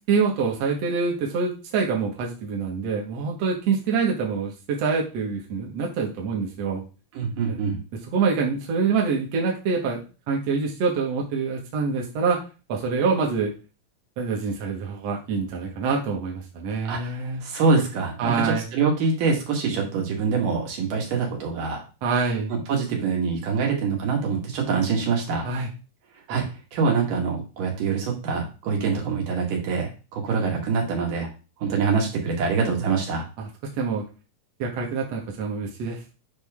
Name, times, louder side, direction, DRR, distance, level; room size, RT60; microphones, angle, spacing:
voice 1, 0.1-6.8 7.5-7.6 8.1-10.0 10.3-12.4 12.7-13.5 14.2-17.4 18.2-18.6 22.0-22.5 25.4-25.7 33.4-34.1 34.6-36.0, right 5 dB, 55° right, -1 dB, 2.3 m, -25 dB
voice 2, 7.1-7.8 16.9-17.1 17.4-21.8 22.5-25.5 26.3-31.3 31.6-33.2, right 5 dB, 75° right, 0 dB, 3.3 m, -25 dB
8.4 x 5.2 x 3.6 m, 0.33 s
omnidirectional pair, 3.8 m